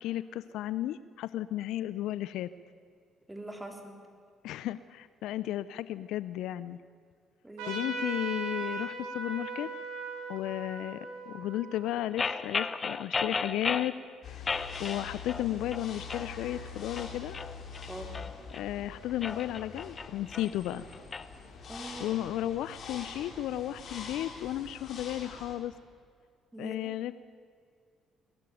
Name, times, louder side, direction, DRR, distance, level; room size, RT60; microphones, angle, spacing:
voice 1, 0.0-2.5 4.4-6.8 7.7-9.7 10.3-13.9 14.3-14.4 14.8-17.4 18.5-20.9 22.0-25.7 26.6-27.1, left 13 dB, 70° left, 16 dB, 0.5 m, -34 dB
voice 2, 3.3-4.0 7.4-7.8 17.9-18.1 21.7-22.1 26.5-27.0, right 1 dB, 10° right, 3 dB, 3.9 m, -43 dB
Trumpet, 7.6-12.7, right 3 dB, 75° right, 5.1 m, -39 dB
sound 1, 12.2-13.9 14.5-15.5 15.7-16.3 16.8-18.6 19.1-21.3, left 4 dB, 35° left, 0.9 m, -34 dB
sound 2, 14.2-25.6, left 5 dB, 55° left, 3.9 m, -45 dB
21.0 x 13.5 x 9.3 m, 2.1 s
hypercardioid pair, 50°, 0 cm